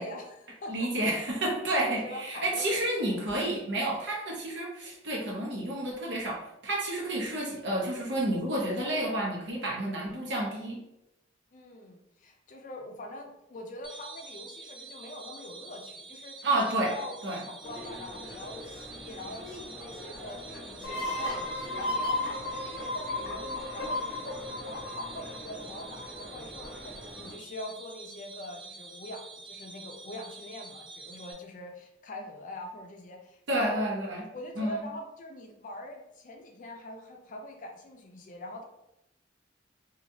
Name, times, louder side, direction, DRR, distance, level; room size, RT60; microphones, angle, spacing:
voice 1, 0.0-0.9 1.8-2.8 11.5-17.2 17.6-33.9 34.3-38.6, left 1 dB, 45° left, 3 dB, 0.4 m, -43 dB
voice 2, 0.7-10.8 16.4-16.9 17.2-17.4 33.5-34.2 34.6-34.8, right 1 dB, 70° right, -2 dB, 0.9 m, -30 dB
sound 1, 13.8-31.3, right 4 dB, 30° right, 0.5 m, -47 dB
sound 2, 17.6-27.3, left 1 dB, 5° right, 1.1 m, -45 dB
sound 3, 20.8-26.3, left 1 dB, 85° left, 0.7 m, -34 dB
2.9 x 2.4 x 2.6 m, 0.84 s
head